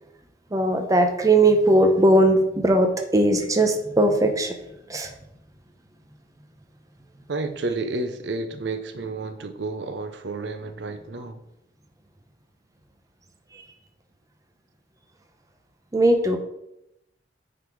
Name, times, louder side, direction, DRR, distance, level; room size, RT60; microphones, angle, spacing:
voice 1, 0.5-4.6 4.9-5.1 13.5-13.7 15.9-16.4, right 1 dB, 20° right, 0.7 m, -19 dB
voice 2, 7.3-11.4, right 3 dB, 80° right, 0.7 m, -31 dB
9.3 x 4.1 x 4.7 m
head